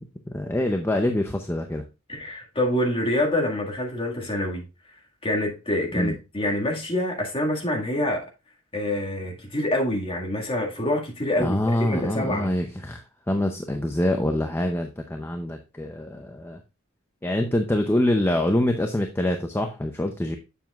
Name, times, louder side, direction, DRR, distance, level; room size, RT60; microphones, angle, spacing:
voice 1, 0.3-1.8 5.9-6.2 11.4-13.0 13.3-16.6 17.2-20.4, left 1 dB, 10° left, 0.6 m, -25 dB
voice 2, 2.1-4.7 5.2-8.3 8.7-12.5, left 1 dB, 25° left, 1.9 m, -26 dB
7.7 x 7.0 x 2.4 m
head